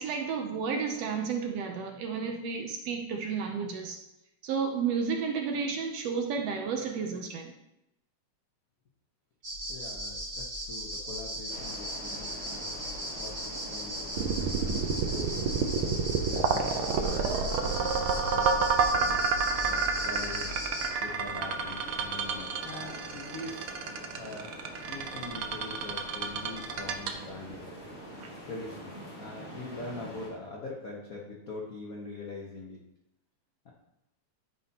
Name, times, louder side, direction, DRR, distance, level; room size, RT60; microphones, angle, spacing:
voice 1, 0.0-4.0 4.4-7.5, right 5 dB, 70° right, 3 dB, 1.6 m, -32 dB
sound 1, 9.4-20.9, equal, 35° right, 2.6 m, -37 dB
voice 2, 9.7-12.9 13.2-15.6 16.3-19.2 19.5-20.5 21.0-23.8 24.2-24.5 24.8-27.7 28.5-32.8 33.6-33.7, left 3 dB, 80° left, -2 dB, 0.7 m, -43 dB
queixumes dos pinos, 11.5-30.3, equal, 25° left, 2.0 m, -46 dB
sound 2, 14.2-28.3, right 5 dB, 90° right, 1.1 m, -29 dB
13.5 x 5.5 x 2.9 m, 0.88 s
omnidirectional pair, 3.4 m